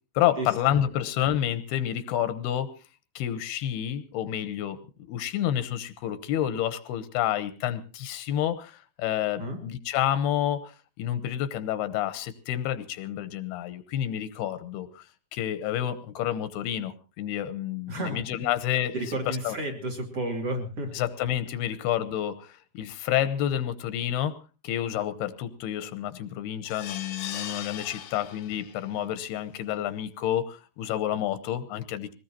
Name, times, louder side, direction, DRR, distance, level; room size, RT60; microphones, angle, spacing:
voice 1, 0.2-2.7 3.2-15.1 15.3-19.6 20.9-24.4 24.6-32.1, left 11 dB, 85° left, 12 dB, 2.9 m, -29 dB
voice 2, 17.9-18.2 18.9-20.9, right 1 dB, 40° right, 1 dB, 3.0 m, -31 dB
sound 1, 26.7-28.9 29.4-29.5 29.8-29.9, left 10 dB, 70° left, 2.1 m, -39 dB
22.5 x 18.5 x 2.9 m, 0.34 s
omnidirectional pair, 4.6 m